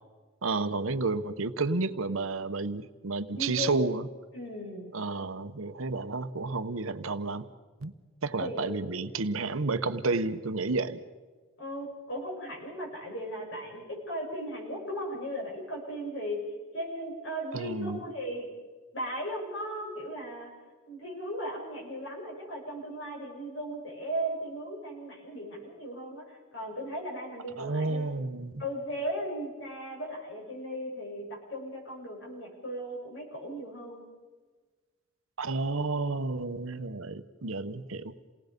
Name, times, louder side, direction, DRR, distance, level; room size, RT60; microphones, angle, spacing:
voice 1, 0.4-4.1 4.9-7.5 7.8-7.9 8.2-11.0 17.5-18.0 27.6-28.6 35.4-38.1, right 3 dB, 85° right, 10 dB, 1.1 m, -31 dB
voice 2, 3.3-3.8 4.3-4.9 8.4-8.8 11.6-16.4 16.7-18.5 18.9-20.5 20.9-28.2 28.6-34.1, equal, 60° left, -1 dB, 7.1 m, -37 dB
28.5 x 18.5 x 5.3 m, 1.4 s
head